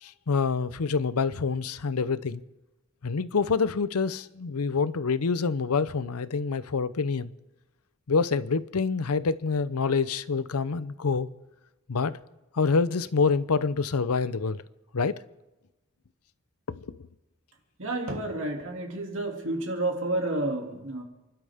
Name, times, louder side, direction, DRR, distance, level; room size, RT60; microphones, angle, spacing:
voice 1, 0.0-2.4 3.0-7.3 8.1-11.3 11.9-12.2 12.5-14.6 14.9-15.2 16.7-16.8, left 4 dB, 80° left, 0.7 m, -26 dB
voice 2, 17.8-21.0, right 2 dB, 60° right, 2.6 m, -30 dB
29.5 x 12.0 x 3.6 m
head